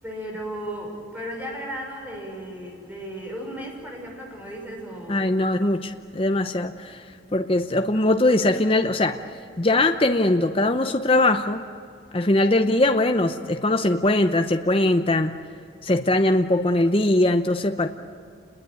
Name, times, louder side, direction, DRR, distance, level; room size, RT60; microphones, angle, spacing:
voice 1, 0.0-5.3 12.6-12.8, equal, 10° right, -1 dB, 6.0 m, -35 dB
voice 2, 5.1-7.0 7.3-9.2 9.6-11.6 12.1-15.3 15.8-17.9, left 2 dB, 30° left, 6 dB, 0.8 m, -21 dB
29.5 x 21.5 x 9.3 m, 2.4 s
head